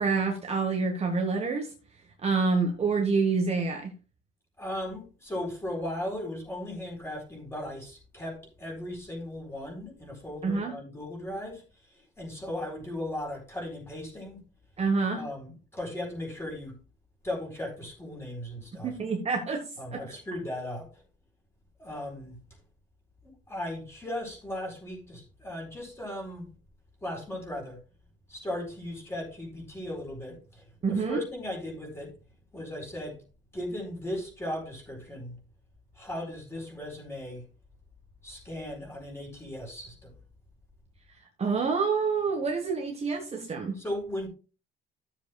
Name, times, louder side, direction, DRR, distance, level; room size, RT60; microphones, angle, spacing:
voice 1, 0.0-1.7 2.2-3.9 10.4-10.7 14.8-15.3 18.7-19.7 19.9-20.0 30.8-31.2 41.4-43.8, right 4 dB, 30° right, 1.4 m, -27 dB
voice 2, 4.6-11.6 12.2-14.4 15.2-16.7 17.2-18.9 19.8-21.0 21.8-22.4 23.2-26.5 27.0-27.8 28.3-32.1 32.5-33.2 33.5-35.4 36.0-37.4 38.2-40.1 43.8-44.3, left 1 dB, 10° left, 4.5 m, -37 dB
13.5 x 7.5 x 2.4 m
cardioid pair, 135°, 21 cm